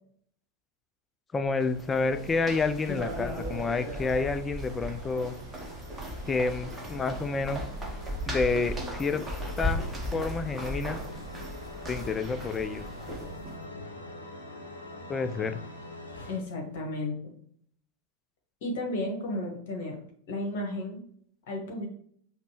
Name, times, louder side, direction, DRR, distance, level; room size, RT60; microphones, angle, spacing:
voice 1, 1.3-5.4 6.3-7.7 8.3-9.2 9.6-9.8 10.1-11.0 11.9-12.8 15.1-15.6, left 4 dB, 15° left, 10 dB, 0.3 m, -29 dB
sound 1, 1.5-13.6, equal, 5° right, 0.8 m, -37 dB
sound 2, 1.8-16.4, left 1 dB, 75° left, 0.7 m, -45 dB
voice 2, 2.8-3.5 16.3-17.3 18.6-20.0 20.3-21.0 21.5-21.9, left 1 dB, 50° left, 1 dB, 1.1 m, -33 dB
5.0 x 2.1 x 3.0 m, 0.62 s
figure-of-eight pair, 90°, 0 cm